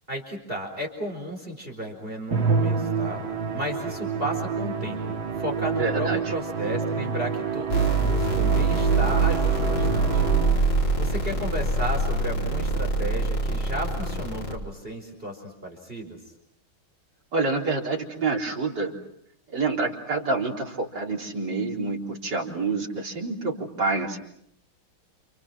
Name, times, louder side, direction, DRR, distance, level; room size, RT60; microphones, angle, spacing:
voice 1, 0.1-3.2 3.5-10.6 11.0-16.2, right 1 dB, 25° right, 2 dB, 5.0 m, -34 dB
Musical instrument, 2.3-10.8, right 5 dB, 70° right, 2.8 m, -28 dB
voice 2, 5.7-6.3 17.3-18.9 19.5-24.2, right 3 dB, 55° right, -1 dB, 4.4 m, -27 dB
sound 1, 7.7-14.5, right 3 dB, 60° left, 5.1 m, -24 dB
30.0 x 29.0 x 6.2 m, 0.70 s
omnidirectional pair, 2.2 m